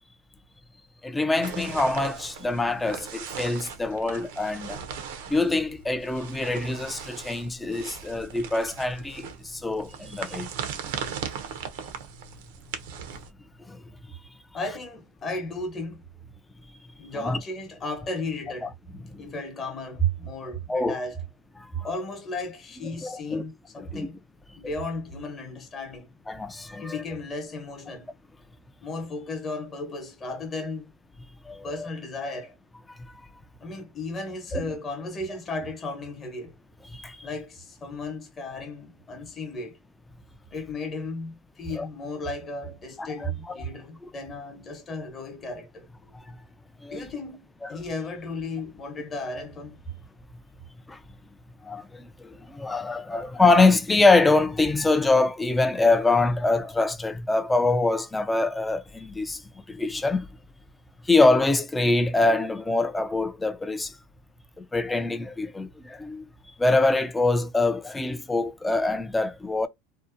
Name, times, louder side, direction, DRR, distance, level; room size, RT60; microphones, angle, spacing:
voice 1, 1.0-4.8 5.3-10.5 13.7-13.8 17.2-17.4 19.1-19.2 20.7-21.0 21.6-21.9 23.0-23.4 23.8-24.1 26.3-27.0 31.5-31.9 34.5-34.6 36.9-37.3 41.7-41.9 43.0-43.6 46.1-46.2 46.8-47.1 50.9-51.0 51.6-60.3 61.0-64.0 64.6-66.2 66.6-69.7, left 3 dB, 10° left, 0.3 m, -24 dB
sound 1, 1.4-13.3, right 7 dB, 80° right, 0.6 m, -38 dB
voice 2, 14.5-16.0 17.0-18.8 19.2-21.2 21.8-24.2 24.5-26.1 26.8-28.1 28.8-30.9 31.6-32.5 33.6-36.6 37.2-39.8 40.5-45.9 46.3-46.4 46.9-49.8, left 1 dB, 25° left, 0.9 m, -34 dB
2.6 x 2.1 x 2.4 m
supercardioid pair, 125°, 0 cm